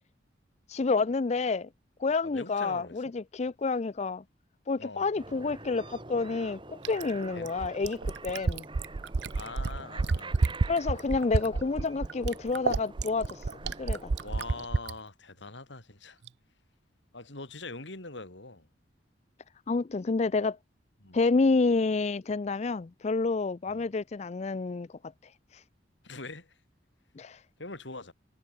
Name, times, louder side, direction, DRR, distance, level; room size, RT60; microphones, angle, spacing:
voice 1, 0.7-1.7 2.0-4.2 4.7-8.7 10.7-14.1 19.7-20.6 21.1-24.9 25.5-25.6 27.2-27.4, left 4 dB, 35° left, 0.4 m, -29 dB
voice 2, 2.2-3.1 4.8-5.1 7.3-7.5 9.3-10.4 14.2-16.2 17.1-18.7 21.0-21.2 23.7-23.9 26.0-26.5 27.6-28.1, left 3 dB, 75° left, 3.4 m, -43 dB
sound 1, 5.1-14.7, right 2 dB, 25° right, 5.0 m, -46 dB
Fill (with liquid), 6.8-15.0 16.3-16.4, right 3 dB, 65° right, 0.6 m, -29 dB
head